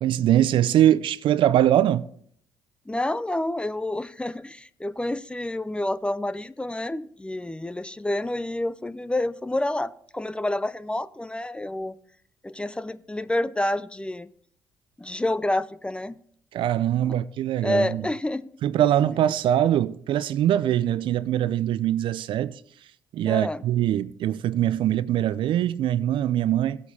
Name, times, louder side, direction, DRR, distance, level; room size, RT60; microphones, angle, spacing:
voice 1, 0.0-2.1 16.5-18.0 18.6-22.6 23.1-26.8, right 11 dB, 60° right, 0.4 m, -22 dB
voice 2, 2.9-12.0 12.4-14.3 15.0-16.2 17.6-18.4 23.3-23.6, left 1 dB, 10° left, 0.5 m, -28 dB
16.0 x 8.2 x 2.8 m
hypercardioid pair, 55°, 10 cm